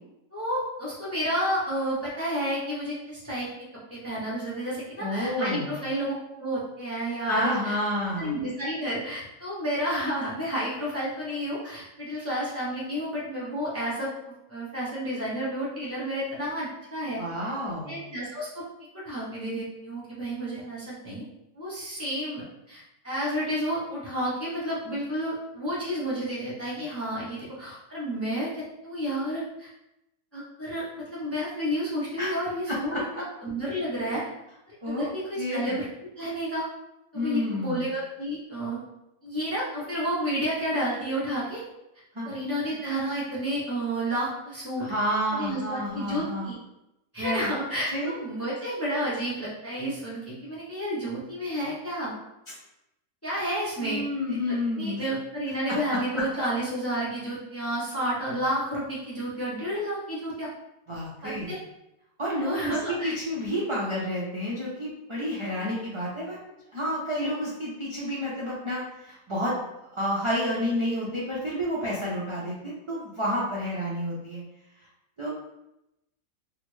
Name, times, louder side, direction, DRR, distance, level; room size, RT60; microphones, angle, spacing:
voice 1, 0.3-3.5 3.9-7.8 8.2-14.1 14.5-17.2 17.9-18.6 18.9-21.2 21.5-29.7 30.3-34.2 34.8-35.9 36.2-36.7 37.1-38.8 39.2-41.6 42.2-44.9 45.3-46.5 47.1-52.1 53.2-54.0 54.3-54.4 54.7-60.5 61.2-61.6 62.4-63.2 65.4-65.5, equal, 15° left, -7 dB, 0.5 m, -31 dB
voice 2, 5.0-5.7 7.3-8.4 17.2-18.0 32.2-32.3 32.7-33.0 34.8-35.1 35.4-35.8 37.1-37.8 42.1-42.3 44.8-46.5 47.2-47.5 47.9-48.1 53.8-55.0 55.7-55.8 56.1-56.2 60.9-61.5 62.2-66.4 66.7-69.5 69.8-74.4 75.2-75.3, equal, 55° right, -7 dB, 0.3 m, -30 dB
3.9 x 2.1 x 3.1 m, 0.88 s
omnidirectional pair, 1.6 m